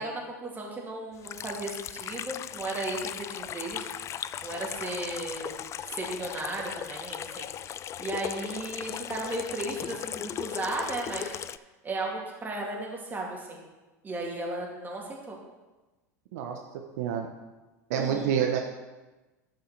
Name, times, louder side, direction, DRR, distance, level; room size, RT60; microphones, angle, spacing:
voice 1, 0.0-3.9 4.4-5.6 5.9-7.5 8.0-11.4 11.8-13.6 14.0-15.4 18.0-18.3, right 2 dB, 20° right, -2 dB, 2.7 m, -35 dB
Water tap faucet / Sink (filling or washing), 1.2-11.6, left 10 dB, 35° left, 0.3 m, -37 dB
voice 2, 17.0-17.3 17.9-18.6, right 8 dB, 70° right, 3 dB, 0.9 m, -27 dB
12.0 x 5.5 x 4.5 m, 1.2 s
hypercardioid pair, 90°, 9 cm